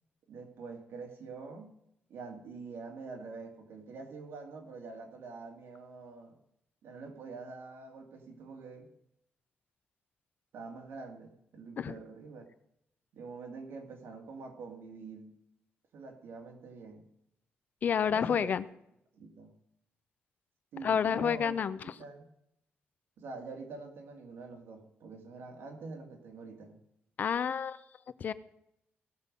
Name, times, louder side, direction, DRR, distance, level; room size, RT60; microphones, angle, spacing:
voice 1, 0.3-1.8 2.1-6.4 6.8-8.9 10.5-12.5 13.1-15.4 15.9-17.1 18.1-18.5 19.1-19.6 20.7-21.5 21.8-22.3 23.2-26.8, right 4 dB, 75° right, 3 dB, 2.3 m, -46 dB
voice 2, 17.8-18.6 20.8-21.8 27.2-27.8 28.2-28.3, left 7 dB, 45° left, 15 dB, 0.5 m, -29 dB
17.0 x 6.7 x 5.3 m, 0.80 s
wide cardioid pair, 165°, 4 cm